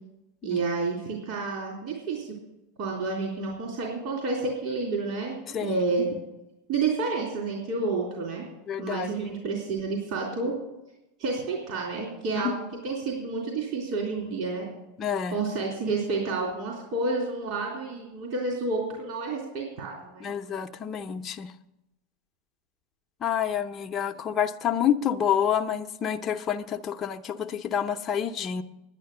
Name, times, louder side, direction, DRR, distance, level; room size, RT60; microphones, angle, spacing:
voice 1, 0.4-2.3 2.8-6.1 6.7-8.4 8.8-10.6 11.2-14.7 15.3-20.3, right 3 dB, 60° right, 3.5 m, -30 dB
voice 2, 5.5-5.8 8.7-9.1 15.0-15.4 20.2-21.5 23.2-28.6, left 8 dB, 30° left, 0.7 m, -28 dB
10.5 x 9.8 x 6.8 m
hypercardioid pair, 95°, 0 cm